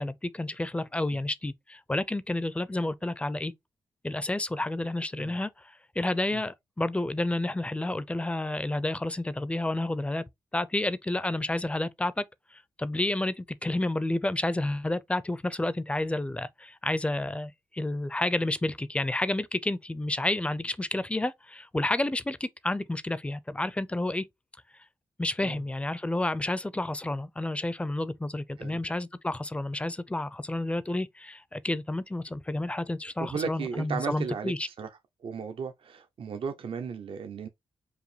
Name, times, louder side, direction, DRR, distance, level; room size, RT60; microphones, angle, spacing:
voice 1, 0.0-3.5 4.0-5.5 6.0-10.2 10.5-12.2 12.8-24.3 25.2-34.7, left 2 dB, 10° left, 0.4 m, -30 dB
voice 2, 33.2-34.9 35.2-37.5, right 6 dB, 60° right, 0.5 m, -35 dB
4.7 x 2.6 x 3.2 m
cardioid pair, 95°, 10 cm